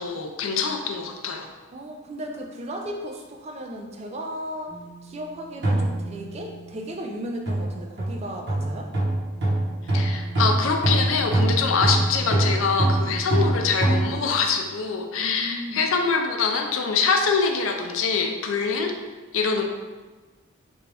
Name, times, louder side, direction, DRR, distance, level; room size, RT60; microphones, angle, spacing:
voice 1, 0.0-1.5 9.9-18.9 19.3-19.6, left 5 dB, 75° left, 4 dB, 0.4 m, -24 dB
voice 2, 1.7-4.7 5.0-8.9 15.2-15.8, equal, 30° right, 2 dB, 0.3 m, -35 dB
sound 1, 4.7-4.9 5.6-6.6 7.5-14.1, right 1 dB, 55° right, 0.9 m, -24 dB
3.3 x 2.6 x 3.3 m, 1.3 s
head